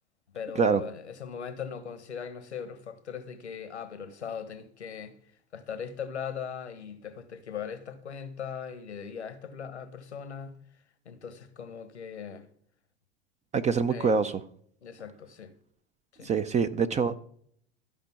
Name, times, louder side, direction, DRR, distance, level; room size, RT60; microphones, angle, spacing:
voice 1, 0.3-5.1 5.5-10.6 11.0-12.5 13.9-14.2 14.8-15.5 16.1-16.3, left 7 dB, 85° left, 1.2 m, -39 dB
voice 2, 13.5-14.4 16.2-17.2, right 5 dB, 20° right, 0.5 m, -25 dB
13.5 x 5.2 x 5.8 m
hypercardioid pair, 85°, 33 cm